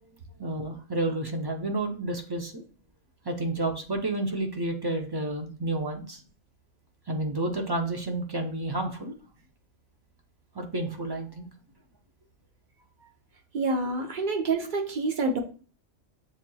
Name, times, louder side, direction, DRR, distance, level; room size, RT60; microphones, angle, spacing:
voice 1, 0.4-2.6 3.3-6.2 7.1-9.1 10.6-11.5, right 2 dB, 30° right, 3 dB, 0.4 m, -30 dB
voice 2, 13.5-15.4, right 3 dB, 50° right, 2 dB, 0.9 m, -27 dB
7.4 x 2.8 x 2.2 m, 0.39 s
omnidirectional pair, 1.1 m